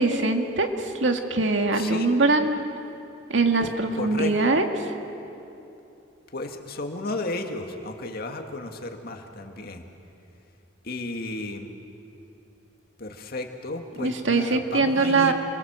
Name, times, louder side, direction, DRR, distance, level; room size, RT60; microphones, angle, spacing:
voice 1, 0.0-2.6 3.3-4.9 14.0-15.3, right 3 dB, 85° right, 5 dB, 2.0 m, -22 dB
voice 2, 1.7-2.1 3.6-4.3 6.3-9.8 10.8-11.7 13.0-15.3, left 2 dB, 55° left, 4 dB, 2.0 m, -33 dB
27.5 x 22.0 x 7.5 m, 2.8 s
head